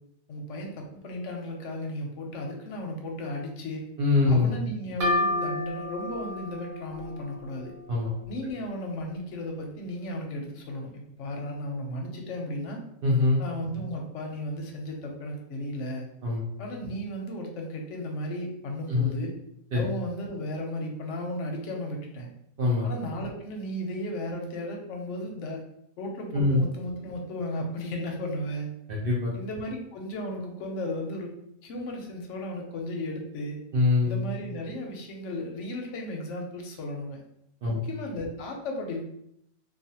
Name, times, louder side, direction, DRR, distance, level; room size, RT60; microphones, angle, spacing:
voice 1, 0.3-3.9 4.3-7.7 8.3-12.8 13.4-16.1 16.6-19.3 19.7-22.3 22.8-25.6 26.0-28.7 29.3-31.3 31.6-33.6 34.0-37.2 37.7-39.0, left 1 dB, 65° left, 1 dB, 0.9 m, -35 dB
voice 2, 4.0-4.5 7.9-8.1 13.0-13.4 16.2-16.4 18.9-19.1 19.7-19.8 22.6-22.9 26.3-26.6 28.9-29.3 33.7-34.2 37.6-37.8, left 3 dB, 60° right, -4 dB, 0.6 m, -23 dB
sound 1, 5.0-8.6, left 1 dB, 85° right, 1.3 m, -31 dB
2.4 x 2.4 x 2.7 m, 0.75 s
omnidirectional pair, 1.5 m